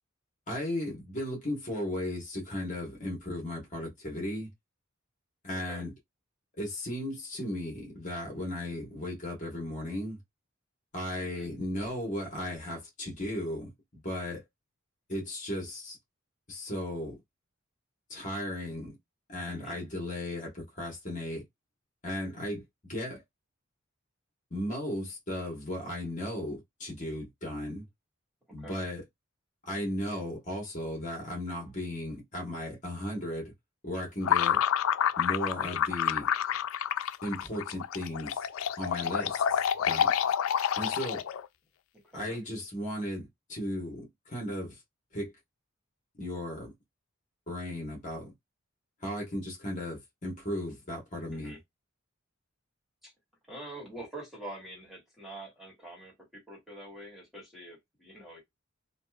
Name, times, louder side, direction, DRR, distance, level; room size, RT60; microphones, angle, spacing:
voice 1, 0.5-4.5 5.4-5.9 6.6-10.2 10.9-14.4 15.1-16.0 16.5-17.2 18.1-19.0 19.3-21.4 22.0-22.6 22.9-23.2 24.5-27.8 28.5-29.0 29.6-33.5 33.8-34.6 35.2-36.3 37.2-38.4 38.8-40.1 40.8-41.2 42.1-44.8 45.1-45.3 46.2-46.7 47.5-48.3 49.0-51.6, left 1 dB, 40° left, 1.4 m, -36 dB
voice 2, 11.2-11.5 19.4-19.8 28.6-28.9 39.0-39.3 42.0-42.4 51.3-51.6 53.0-53.1 53.5-58.4, right 1 dB, ahead, 1.7 m, -46 dB
sound 1, 34.2-41.5, left 9 dB, 85° left, 0.4 m, -28 dB
4.0 x 2.4 x 2.4 m
head